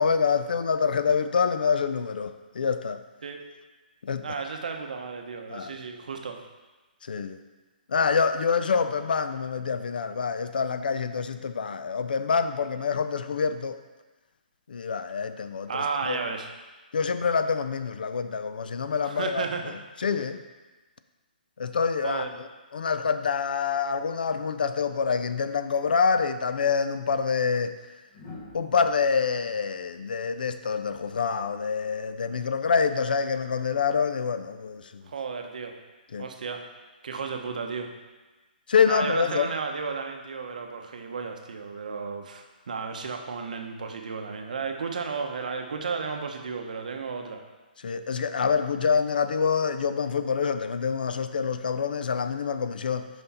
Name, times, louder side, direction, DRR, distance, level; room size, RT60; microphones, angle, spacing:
voice 1, 0.0-3.0 4.0-4.3 5.5-5.7 7.1-7.4 7.9-13.8 14.7-15.8 16.1-16.2 16.9-19.4 20.0-20.4 21.6-22.3 22.7-27.8 28.5-34.8 36.1-36.2 38.7-39.5 47.8-53.1, left 6 dB, 65° left, 10 dB, 0.4 m, -26 dB
voice 2, 4.2-6.4 15.7-16.5 19.0-19.8 22.0-22.3 35.1-35.8 36.2-36.6 37.0-37.9 38.9-47.5, right 5 dB, 50° right, 4 dB, 0.7 m, -33 dB
sound 1, 28.1-31.2 32.7-33.0, left 2 dB, 15° left, 0.6 m, -49 dB
5.8 x 5.3 x 4.1 m, 1.2 s
hypercardioid pair, 180°, 5 cm